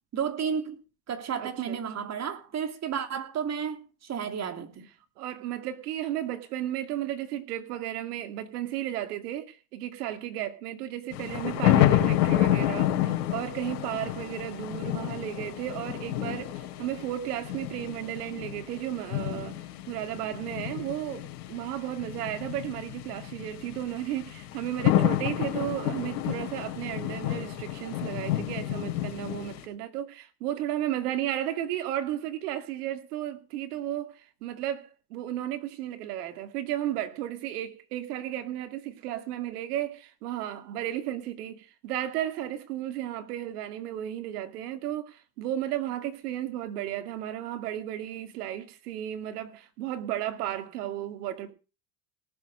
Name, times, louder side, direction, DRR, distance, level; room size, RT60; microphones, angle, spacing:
voice 1, 0.1-0.8 1.1-4.9, right 7 dB, 35° right, 2.8 m, -32 dB
voice 2, 1.4-2.1 5.2-19.6 19.9-51.5, right 12 dB, 75° right, 2.4 m, -34 dB
sound 1, 11.1-29.6, left 13 dB, 65° left, 3.4 m, -29 dB
18.5 x 7.2 x 6.5 m
hypercardioid pair, 100°, 46 cm